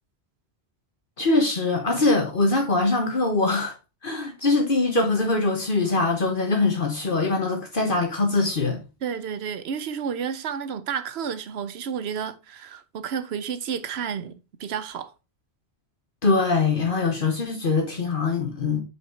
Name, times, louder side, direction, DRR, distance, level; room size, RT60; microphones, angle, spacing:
voice 1, 1.2-3.7 4.0-8.8 16.2-18.8, left 3 dB, 55° left, 1.3 m, -23 dB
voice 2, 9.0-14.3 14.6-15.1, right 7 dB, 75° right, 1.0 m, -31 dB
5.9 x 4.8 x 4.3 m
omnidirectional pair, 1.1 m